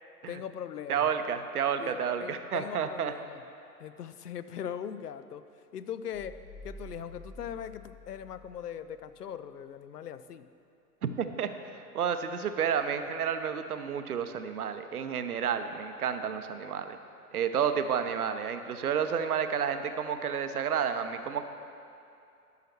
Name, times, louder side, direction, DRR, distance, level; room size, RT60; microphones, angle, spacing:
voice 1, 0.3-1.1 1.8-3.4 3.8-5.5 5.7-10.5, left 8 dB, 75° left, 13 dB, 0.5 m, -40 dB
voice 2, 0.9-3.1 11.0-17.0 17.3-21.4, right 7 dB, 65° right, 9 dB, 0.7 m, -31 dB
sound 1, 6.1-9.1, equal, 10° left, 1.8 m, -49 dB
12.0 x 5.7 x 4.4 m, 2.6 s
figure-of-eight pair, 105°, 48 cm